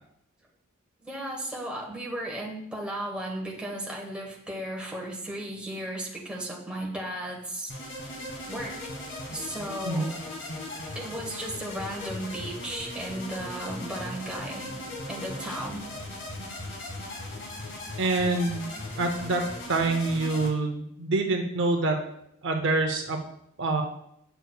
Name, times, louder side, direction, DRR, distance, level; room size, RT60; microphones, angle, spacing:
voice 1, 1.0-7.7 8.5-8.8 9.3-10.3 10.9-14.7 15.1-15.8, right 1 dB, 5° right, -2 dB, 1.1 m, -35 dB
sound 1, 7.7-20.5, left 1 dB, 55° left, 1.8 m, -38 dB
voice 2, 18.0-19.4 19.7-22.0 22.4-23.2 23.6-23.8, right 3 dB, 60° right, 4 dB, 0.6 m, -26 dB
7.8 x 6.6 x 2.3 m, 0.75 s
head